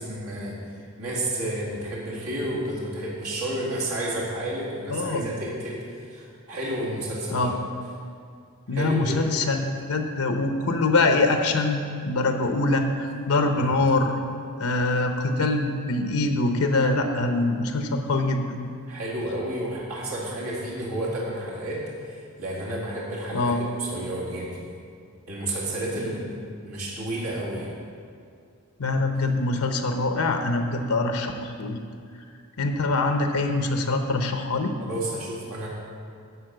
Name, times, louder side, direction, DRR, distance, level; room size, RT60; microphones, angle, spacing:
voice 1, 0.0-7.5 8.7-9.2 13.5-13.7 18.9-24.7 25.3-26.2 26.6-27.7 34.8-35.7, right 1 dB, 85° right, -6 dB, 2.0 m, -31 dB
voice 2, 4.9-5.3 7.3-7.6 8.7-14.2 14.6-18.4 23.3-23.6 28.8-31.8 32.6-34.7, left 2 dB, 85° left, 5 dB, 0.8 m, -24 dB
11.5 x 4.0 x 7.9 m, 2.3 s
head